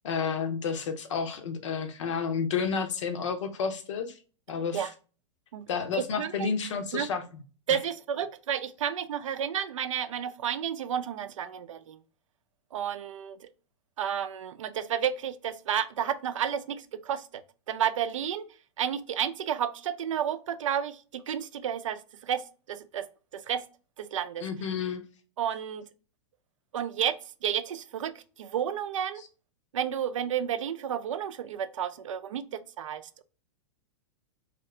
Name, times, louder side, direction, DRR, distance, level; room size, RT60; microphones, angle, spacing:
voice 1, 0.0-4.2 4.5-4.9 5.7-7.2 7.7-7.8 24.4-25.0 29.2-29.3, left 6 dB, 70° left, 8 dB, 0.7 m, -31 dB
voice 2, 6.0-6.5 6.9-7.1 7.7-12.0 12.7-13.5 14.0-18.4 18.8-23.1 23.3-23.6 24.0-24.5 25.4-25.9 26.7-29.2 29.7-33.2, right 9 dB, 80° right, 11 dB, 0.4 m, -31 dB
2.8 x 2.5 x 3.1 m, 0.37 s
hypercardioid pair, 120°, 16 cm